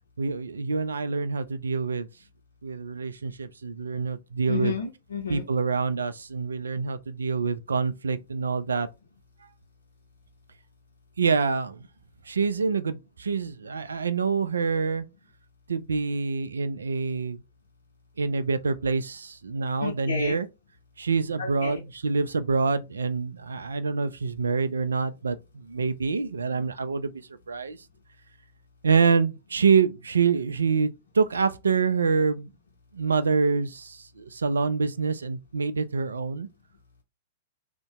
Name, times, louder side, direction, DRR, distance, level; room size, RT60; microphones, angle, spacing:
voice 1, 0.2-2.1 2.6-4.8 5.3-8.9 11.2-11.9 12.3-15.1 15.7-17.4 18.2-20.5 21.0-27.1 27.5-27.8 28.8-32.5 32.9-36.5, right 5 dB, 80° right, 0.3 m, -26 dB
voice 2, 4.5-5.4 19.8-20.4 21.4-21.7, left 6 dB, 70° left, 0.6 m, -31 dB
2.6 x 2.1 x 2.9 m
figure-of-eight pair, 105°, 0 cm